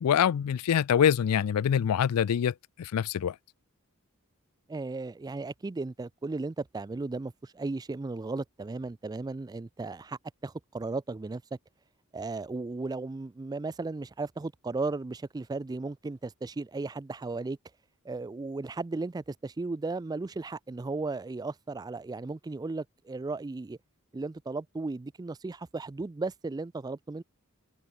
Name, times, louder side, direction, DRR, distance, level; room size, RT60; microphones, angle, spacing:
voice 1, 0.0-3.4, left 8 dB, 85° left, 0.4 m, -25 dB
voice 2, 4.7-11.4 12.1-17.6 18.0-23.8 24.1-27.2, right 3 dB, 20° right, 0.3 m, -35 dB
open air
head